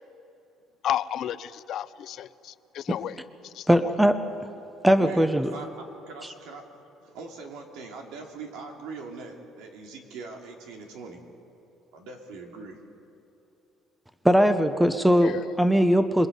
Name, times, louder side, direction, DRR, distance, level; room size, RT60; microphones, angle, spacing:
voice 1, 0.8-3.1 3.4-3.9 15.2-15.4, left 10 dB, 55° left, 16 dB, 0.5 m, -32 dB
voice 2, 3.7-4.2 4.8-5.5 14.2-16.3, equal, 5° right, 9 dB, 0.8 m, -20 dB
voice 3, 4.9-11.2 11.9-12.8, right 4 dB, 85° right, 1 dB, 3.0 m, -42 dB
27.0 x 22.0 x 5.5 m, 2.9 s
cardioid pair, 140°, 0 cm